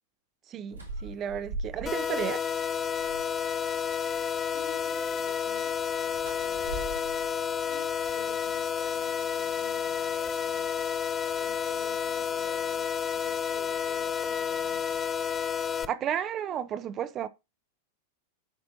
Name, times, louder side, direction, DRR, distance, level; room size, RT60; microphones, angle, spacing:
voice 1, 0.5-2.5 15.9-17.3, right 9 dB, 30° right, 0.4 m, -33 dB
sound 1, 0.7-2.3 2.6-3.5 5.7-8.5, right 2 dB, 85° right, 2.6 m, -41 dB
sound 2, 1.9-15.9, left 7 dB, 25° left, 0.5 m, -30 dB
voice 2, 4.5-6.9 7.6-10.9 11.3-15.1, left 9 dB, 50° left, 1.6 m, -51 dB
11.5 x 4.3 x 2.7 m
figure-of-eight pair, 90°, 0 cm